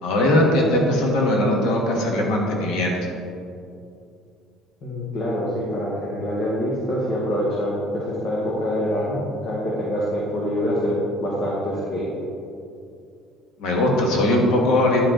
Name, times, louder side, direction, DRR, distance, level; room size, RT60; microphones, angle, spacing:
voice 1, 0.0-3.0 13.6-15.0, left 1 dB, 75° left, -1 dB, 1.5 m, -20 dB
voice 2, 4.8-12.1, equal, 40° left, -6 dB, 1.4 m, -25 dB
10.5 x 5.0 x 3.8 m, 2.5 s
cardioid pair, 165°, 0 cm